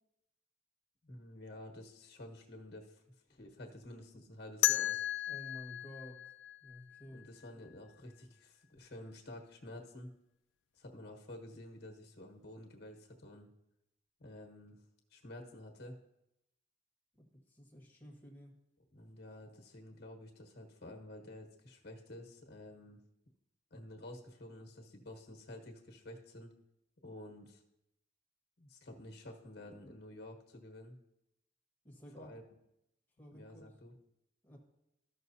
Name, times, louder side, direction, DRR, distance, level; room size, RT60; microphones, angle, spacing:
voice 1, 1.0-3.0 3.3-5.0 7.1-10.1 10.7-13.5 14.2-14.8 15.1-16.0 18.9-23.0 23.7-26.5 27.0-27.6 28.6-31.0 32.2-32.4 33.3-33.9, left 1 dB, 60° left, 2 dB, 1.2 m, -50 dB
sound 1, 4.6-7.5, left 14 dB, 80° left, 0.3 m, -35 dB
voice 2, 5.3-6.3 6.6-7.2 17.2-18.5 31.8-32.3 33.2-33.7 34.4-34.6, equal, 10° left, 0 dB, 1.4 m, -52 dB
13.0 x 6.3 x 2.7 m, 0.85 s
head